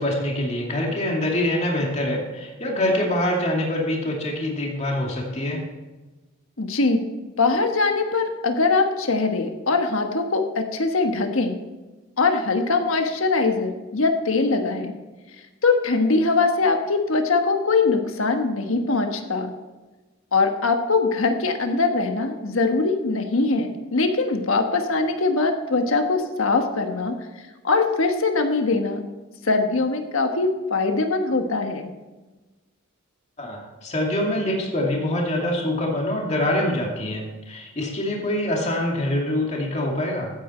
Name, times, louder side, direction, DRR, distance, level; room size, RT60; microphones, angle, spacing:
voice 1, 0.0-5.6 33.4-40.3, left 1 dB, 30° left, -1 dB, 2.4 m, -25 dB
voice 2, 6.6-7.0 7.4-11.6 12.2-14.9 15.6-19.5 20.3-27.2 27.6-29.0 29.4-31.9, left 3 dB, 70° left, 5 dB, 1.4 m, -22 dB
15.0 x 9.0 x 4.4 m, 1.2 s
head